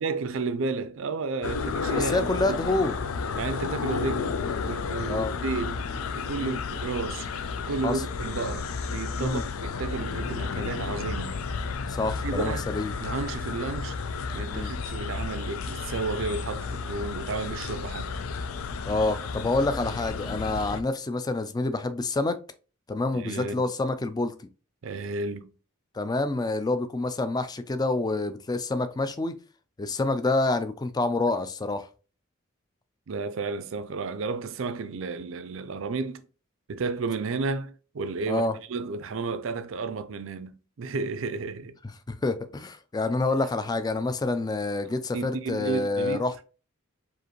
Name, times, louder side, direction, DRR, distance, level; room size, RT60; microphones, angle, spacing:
voice 1, 0.0-2.6 3.3-4.3 4.6-5.8 6.1-7.3 7.6-11.4 12.2-12.6 13.0-14.0 14.3-18.2 23.1-23.7 24.8-25.5 33.1-36.2 36.7-38.4 38.7-41.8 44.8-46.2, right 4 dB, 65° right, 0.5 m, -32 dB
sound 1, 1.4-20.8, left 5 dB, 90° left, 0.4 m, -32 dB
voice 2, 1.9-3.0 5.1-5.3 6.4-6.6 7.8-8.0 9.2-9.4 11.9-12.9 14.5-14.7 18.9-22.4 22.9-24.3 25.9-29.3 29.8-31.9 38.3-38.5 42.1-46.4, left 2 dB, 20° left, 0.3 m, -27 dB
4.9 x 2.5 x 3.0 m
head